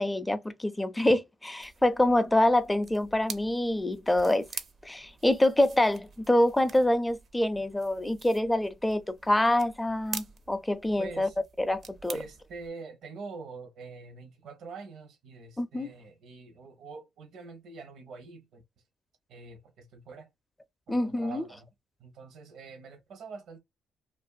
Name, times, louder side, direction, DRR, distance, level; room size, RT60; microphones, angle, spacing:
voice 1, 0.0-4.5 4.8-11.3 11.6-12.2 15.6-15.9 20.9-21.4, left 1 dB, 10° left, 0.4 m, -26 dB
sound 1, 1.6-12.7, right 6 dB, 55° right, 0.5 m, -46 dB
voice 2, 11.0-11.4 12.1-18.6 19.3-20.3 20.9-21.7 22.0-23.6, right 4 dB, 75° right, 0.8 m, -45 dB
2.5 x 2.5 x 2.3 m
cardioid pair, 90°, 0 cm